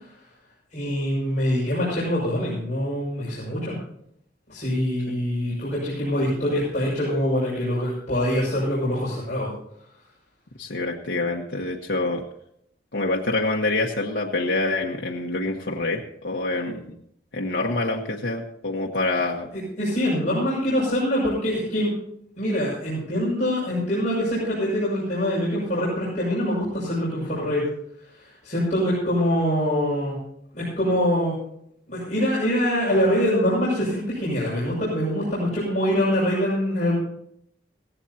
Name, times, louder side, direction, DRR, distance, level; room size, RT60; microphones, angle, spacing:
voice 1, 0.7-3.8 4.5-9.5 19.8-21.9 22.4-27.6 28.2-30.2 30.5-31.3 31.9-37.0, equal, 45° left, -8 dB, 6.5 m, -24 dB
voice 2, 10.6-12.2 12.9-17.0 17.3-19.5, left 2 dB, 75° left, -1 dB, 1.3 m, -26 dB
17.0 x 16.5 x 2.9 m, 0.72 s
head